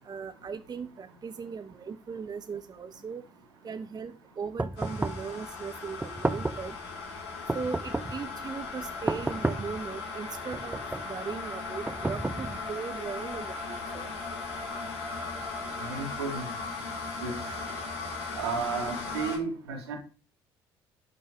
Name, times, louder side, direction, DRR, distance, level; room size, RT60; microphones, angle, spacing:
voice 1, 0.0-3.2 3.6-6.8 7.5-14.1, right 5 dB, 30° right, 10 dB, 1.0 m, -38 dB
sound 1, 4.6-5.3 6.0-6.7 7.5-8.2 9.1-9.8 10.5-11.1 11.9-12.7, right 2 dB, 10° right, 0.8 m, -32 dB
sound 2, 4.8-19.4, left 4 dB, 65° left, 5.0 m, -37 dB
voice 2, 15.8-16.5 17.2-17.3 18.4-20.0, right 5 dB, 75° right, 2 dB, 3.1 m, -33 dB
12.5 x 6.8 x 5.3 m, 0.37 s
figure-of-eight pair, 50°, 13 cm